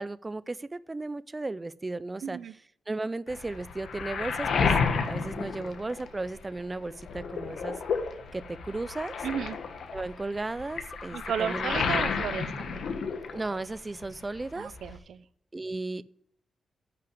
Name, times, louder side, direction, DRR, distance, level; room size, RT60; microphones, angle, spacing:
voice 1, 0.0-2.4 2.9-4.7 5.0-7.8 8.3-9.1 9.9-11.8 13.3-14.8 15.5-16.0, right 2 dB, 15° right, 17 dB, 0.3 m, -35 dB
voice 2, 2.2-2.5 9.2-9.6 11.1-12.9 14.5-15.2, right 8 dB, 85° right, 14 dB, 0.6 m, -34 dB
Waves surf, 3.3-6.5 6.8-13.8 14.0-15.0, left 5 dB, 65° left, 1.4 m, -31 dB
10.0 x 5.8 x 8.5 m, 0.65 s
wide cardioid pair, 175°, 0 cm